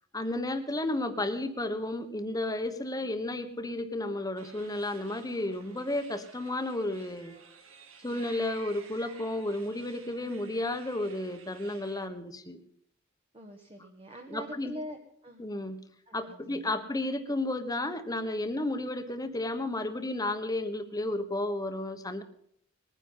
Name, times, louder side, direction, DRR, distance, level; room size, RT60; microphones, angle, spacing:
voice 1, 0.1-7.3 8.0-12.6 14.3-14.7 15.4-15.8 16.1-22.2, left 1 dB, 20° left, 8 dB, 1.3 m, -32 dB
sound 1, 4.4-12.1, right 5 dB, 80° right, 2.0 m, -53 dB
voice 2, 13.3-15.4 16.1-16.7, equal, 30° right, 2 dB, 1.4 m, -44 dB
20.5 x 9.8 x 5.6 m, 0.68 s
head